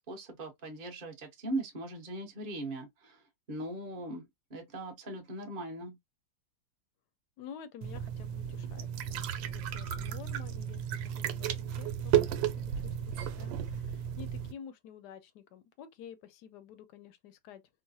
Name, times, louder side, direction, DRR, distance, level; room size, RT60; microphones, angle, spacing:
voice 1, 0.0-3.2 3.5-4.2 4.5-6.0, right 2 dB, 40° right, 0.8 m, -39 dB
voice 2, 7.4-17.6, left 8 dB, 70° left, 1.1 m, -50 dB
sound 1, 7.8-14.5, right 10 dB, 85° right, 1.3 m, -33 dB
3.9 x 2.1 x 2.6 m
omnidirectional pair, 2.0 m